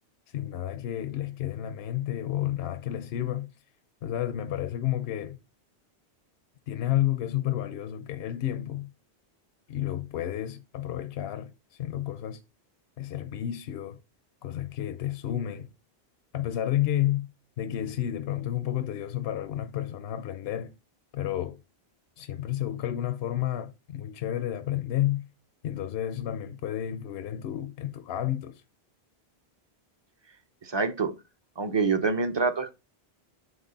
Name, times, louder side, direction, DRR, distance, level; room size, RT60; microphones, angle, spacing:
voice 1, 0.3-3.5 4.0-5.4 6.7-8.9 9.7-12.4 13.0-14.0 14.4-15.7 16.3-17.3 17.6-20.7 21.1-21.6 22.2-25.3 25.6-28.6, left 12 dB, 80° left, 0.8 m, -31 dB
voice 2, 30.6-31.1 31.6-32.7, right 4 dB, 30° right, 0.7 m, -26 dB
8.0 x 3.9 x 3.9 m
omnidirectional pair, 1.0 m